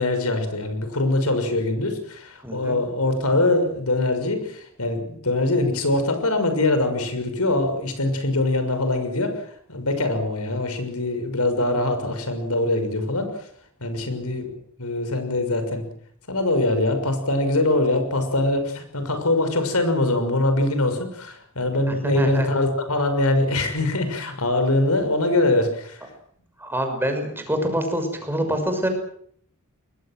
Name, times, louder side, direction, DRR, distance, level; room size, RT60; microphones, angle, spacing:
voice 1, 0.0-9.4 9.7-13.4 13.8-15.8 16.3-26.1, left 2 dB, 75° left, 8 dB, 6.2 m, -23 dB
voice 2, 2.4-2.8 21.9-22.5 26.6-28.9, equal, 10° right, 5 dB, 6.1 m, -26 dB
24.5 x 21.0 x 7.7 m, 0.63 s
head